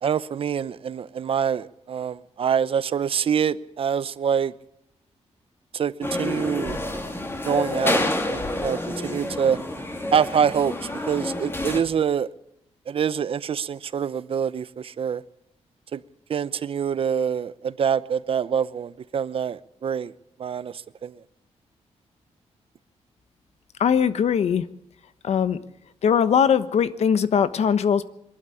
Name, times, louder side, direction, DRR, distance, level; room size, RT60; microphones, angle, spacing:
voice 1, 0.0-4.5 5.7-6.8 7.4-9.6 10.1-12.3 12.9-15.2 15.9-16.0 16.3-20.1 20.4-21.2, right 7 dB, 55° right, 0.7 m, -25 dB
sound 1, 6.0-11.8, left 1 dB, 20° left, 2.9 m, -28 dB
voice 2, 23.8-24.6 25.2-25.6 26.0-28.0, left 7 dB, 70° left, 1.1 m, -20 dB
22.5 x 12.0 x 10.0 m
wide cardioid pair, 125°, 12 cm